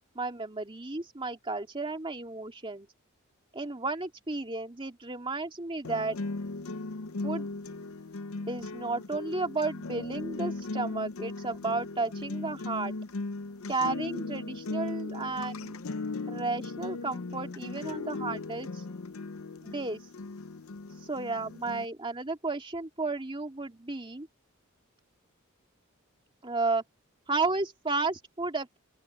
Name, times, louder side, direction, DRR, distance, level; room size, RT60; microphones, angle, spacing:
voice 1, 0.1-2.9 3.5-6.2 7.2-7.5 8.5-12.9 13.7-15.7 16.3-18.8 19.6-20.0 21.0-24.3 26.4-26.8 27.3-28.8, right 3 dB, 25° right, 2.4 m, -33 dB
sound 1, 5.8-21.8, left 3 dB, 80° left, 0.7 m, -37 dB
open air
head